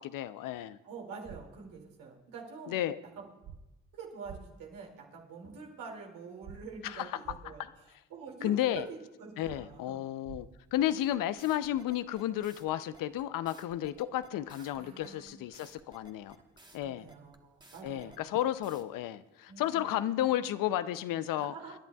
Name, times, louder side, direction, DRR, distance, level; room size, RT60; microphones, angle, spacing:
voice 1, 0.0-0.8 2.7-3.0 6.8-7.1 7.6-7.7 8.4-8.9 9.4-16.4 16.7-17.1 17.8-21.5, left 12 dB, 80° left, 13 dB, 0.6 m, -32 dB
voice 2, 0.8-2.8 3.2-3.3 3.9-10.0 14.6-15.4 16.8-18.3 19.5-20.3 21.3-21.7, right 5 dB, 85° right, -1 dB, 2.6 m, -47 dB
sound 1, 1.2-1.4 3.4-3.6 4.2-4.4 6.4-6.6 7.2-7.4 9.4-9.6 10.2-10.4, right 9 dB, 60° right, 1.1 m, -46 dB
sound 2, 10.9-18.8, right 2 dB, 15° right, 1.3 m, -57 dB
26.5 x 10.5 x 2.3 m, 0.98 s
supercardioid pair, 55°, 32 cm